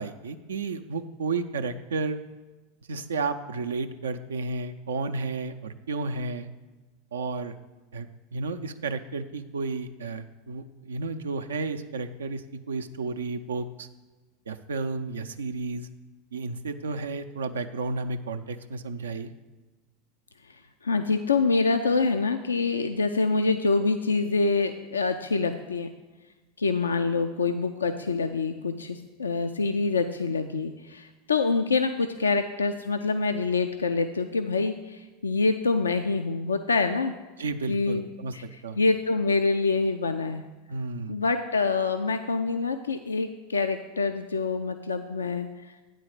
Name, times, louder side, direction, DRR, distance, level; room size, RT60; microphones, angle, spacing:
voice 1, 0.0-2.2 2.9-6.5 7.1-7.5 7.9-13.9 14.5-15.9 16.3-19.3 37.4-38.3 38.6-38.8 40.7-41.1, right 3 dB, 80° right, 8 dB, 0.4 m, -32 dB
voice 2, 20.8-25.9 26.6-37.1 37.7-38.1 38.3-38.4 38.8-40.4 41.1-45.5, left 4 dB, 90° left, 7 dB, 0.3 m, -26 dB
8.8 x 4.0 x 6.5 m, 1.2 s
hypercardioid pair, 85°, 0 cm